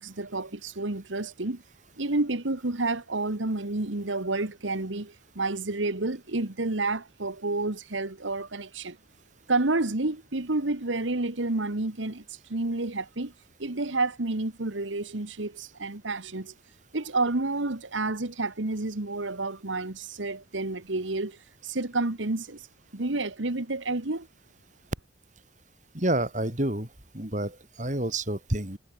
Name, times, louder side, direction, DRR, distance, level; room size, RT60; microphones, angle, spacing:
voice 1, 0.0-1.6 2.0-9.0 9.5-13.3 13.6-16.5 16.9-22.7 22.9-24.3, right 2 dB, 80° right, 1.7 m, -30 dB
voice 2, 25.9-26.9 27.1-28.8, right 1 dB, 40° right, 3.6 m, -28 dB
head